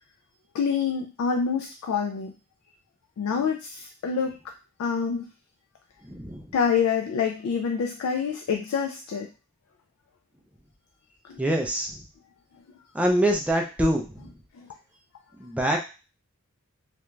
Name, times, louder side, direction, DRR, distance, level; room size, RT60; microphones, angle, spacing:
voice 1, 0.5-2.3 3.2-4.3 4.8-5.3 6.5-9.3 11.3-11.4 14.6-14.7, left 6 dB, 75° left, 2 dB, 0.3 m, -26 dB
voice 2, 6.0-6.4 11.4-12.0 12.9-14.3 15.4-15.8, right 1 dB, 5° right, 1 dB, 0.3 m, -25 dB
2.4 x 2.2 x 3.0 m, 0.33 s
head